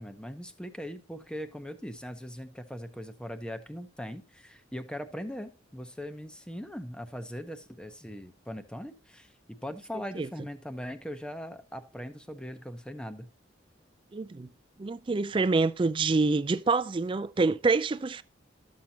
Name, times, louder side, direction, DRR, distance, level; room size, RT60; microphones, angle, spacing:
voice 1, 0.0-9.4 9.6-13.3, equal, 5° left, 0.7 m, -40 dB
voice 2, 14.1-14.5 14.8-18.2, right 3 dB, 25° right, 0.3 m, -26 dB
12.5 x 7.3 x 2.8 m
head